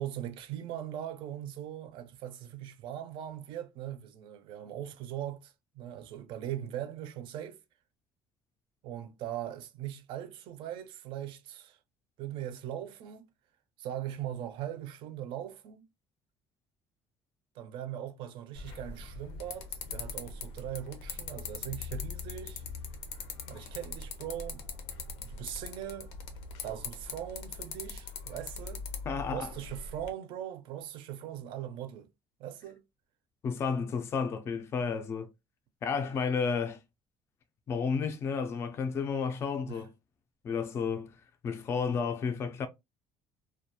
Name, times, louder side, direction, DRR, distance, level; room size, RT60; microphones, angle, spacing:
voice 1, 0.0-7.6 8.8-11.8 12.2-13.3 13.8-15.8 17.6-22.6 23.5-24.7 25.2-26.1 26.6-28.8 29.2-32.1 32.4-32.8 39.7-39.8, right 11 dB, 60° right, 0.4 m, -40 dB
sound 1, 18.6-30.1, left 5 dB, 90° left, 0.6 m, -41 dB
voice 2, 29.1-29.5 33.4-35.3 35.8-36.8 37.7-39.9 40.4-41.1 41.4-42.7, left 5 dB, 25° left, 0.3 m, -32 dB
2.2 x 2.2 x 2.7 m
cardioid pair, 170°, 10 cm